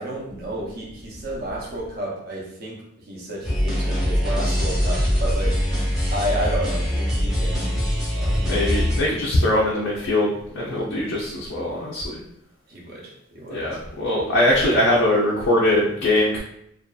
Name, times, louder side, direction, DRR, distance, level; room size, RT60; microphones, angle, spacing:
voice 1, 0.0-2.8 3.1-5.6 6.1-8.7 12.7-13.7, right 1 dB, 45° right, -4 dB, 0.7 m, -31 dB
sound 1, 3.4-9.0, equal, ahead, 0.8 m, -22 dB
voice 2, 8.4-12.2 13.5-16.4, left 1 dB, 60° left, -4 dB, 0.4 m, -21 dB
2.6 x 2.3 x 2.2 m, 0.76 s
head